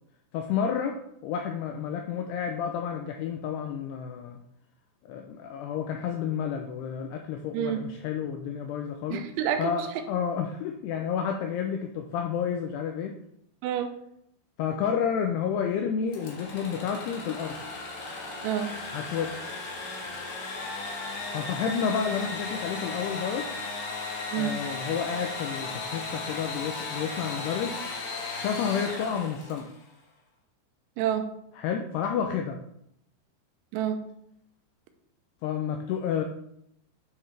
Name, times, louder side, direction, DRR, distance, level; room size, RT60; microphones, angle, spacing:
voice 1, 0.3-4.4 5.0-9.2 9.6-13.2 14.6-17.6 18.9-19.3 21.3-23.5 24.3-27.8 28.3-29.7 31.6-32.6 35.4-36.2, left 7 dB, 90° left, 4 dB, 2.3 m, -30 dB
voice 2, 7.5-7.9 9.1-9.9 13.6-13.9 18.4-18.7 24.3-24.6 31.0-31.3 33.7-34.1, right 9 dB, 85° right, 6 dB, 3.1 m, -28 dB
Engine / Sawing, 16.1-29.8, left 3 dB, 70° left, 1.7 m, -36 dB
9.2 x 5.8 x 3.3 m, 0.75 s
omnidirectional pair, 5.4 m